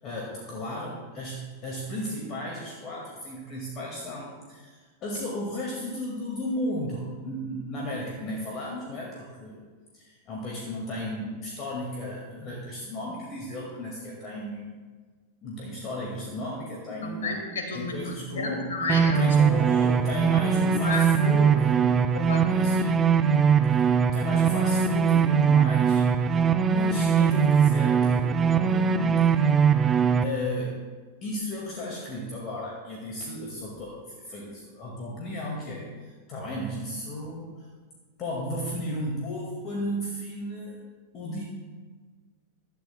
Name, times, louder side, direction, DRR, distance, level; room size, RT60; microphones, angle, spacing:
voice 1, 0.0-9.6 9.9-14.7 15.4-17.3 17.7-18.7 19.1-22.0 22.4-23.1 24.1-26.0 26.7-29.3 30.2-30.8 31.2-37.7 38.2-40.8 41.1-41.4, equal, 35° left, -2 dB, 2.0 m, -34 dB
voice 2, 17.0-19.4 20.8-21.0 22.1-22.5, left 3 dB, 65° left, 3 dB, 1.9 m, -31 dB
sound 1, 18.9-30.2, right 6 dB, 20° right, 0.5 m, -21 dB
16.5 x 11.5 x 2.2 m, 1.4 s
figure-of-eight pair, 90°, 0 cm